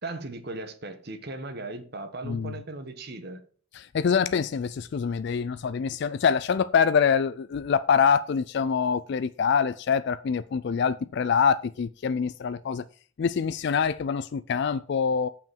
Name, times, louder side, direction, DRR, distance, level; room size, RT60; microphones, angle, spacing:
voice 1, 0.0-3.4, right 2 dB, 45° right, 1.2 m, -37 dB
voice 2, 3.7-12.9 13.2-15.3, left 6 dB, 50° left, 0.3 m, -25 dB
6.9 x 5.7 x 7.5 m
head